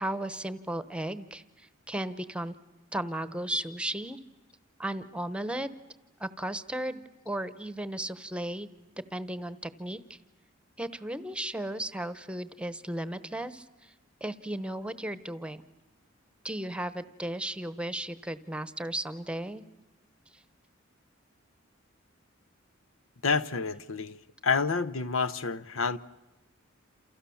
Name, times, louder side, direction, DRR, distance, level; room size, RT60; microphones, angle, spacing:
voice 1, 0.0-2.5 2.9-4.2 4.8-5.7 6.2-8.7 9.1-10.2 10.8-13.9 14.2-15.6 16.4-19.6 20.3-20.4, right 1 dB, 5° right, 1.0 m, -35 dB
voice 2, 23.2-24.2 24.4-26.0, left 5 dB, 75° left, 0.9 m, -28 dB
29.0 x 28.5 x 7.1 m
head